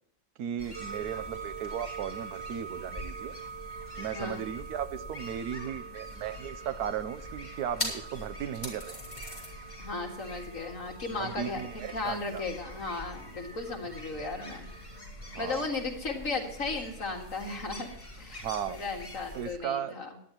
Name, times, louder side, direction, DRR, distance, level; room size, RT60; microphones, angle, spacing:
voice 1, 0.4-3.4 4.0-9.0 11.1-12.4 15.3-15.7 18.4-18.8 19.3-20.0, right 9 dB, 80° right, 13 dB, 1.3 m, -36 dB
sound 1, 0.6-19.5, left 1 dB, 20° left, 3.5 m, -44 dB
sound 2, 0.7-15.0, right 7 dB, 25° right, 0.6 m, -46 dB
voice 2, 9.8-11.6 11.9-14.7 15.4-17.9 18.2-20.1, left 3 dB, 60° left, 2 dB, 2.3 m, -35 dB
17.5 x 11.0 x 2.9 m, 0.73 s
omnidirectional pair, 1.6 m